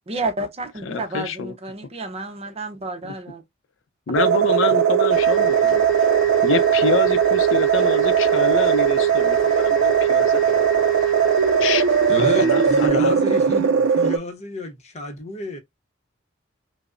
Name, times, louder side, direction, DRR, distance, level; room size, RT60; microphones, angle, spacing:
voice 1, 0.1-3.4, right 2 dB, 35° right, 0.6 m, -30 dB
voice 2, 0.8-1.5 3.0-3.1 4.1-5.9 6.1-10.4 11.6-11.9 12.4-13.2, left 5 dB, 80° left, 0.5 m, -26 dB
sound 1, 4.2-14.2, right 7 dB, 80° right, 0.4 m, -18 dB
sound 2, 5.1-12.9, equal, 5° left, 1.4 m, -36 dB
voice 3, 12.1-15.6, left 2 dB, 35° left, 0.8 m, -29 dB
4.8 x 2.0 x 2.4 m
head